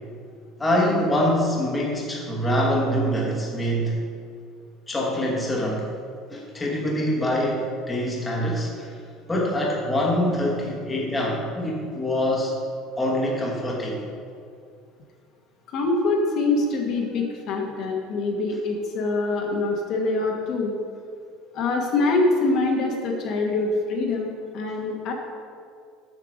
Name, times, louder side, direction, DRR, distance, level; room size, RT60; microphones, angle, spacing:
voice 1, 0.6-4.0 4.9-5.9 6.3-8.9 9.3-12.5 13.0-14.0, equal, 10° left, -3 dB, 1.2 m, -24 dB
voice 2, 15.7-20.7 21.5-24.3 24.5-25.1, left 3 dB, 45° left, 0 dB, 1.2 m, -24 dB
7.6 x 6.5 x 6.2 m, 2.3 s
cardioid pair, 175°, 0 cm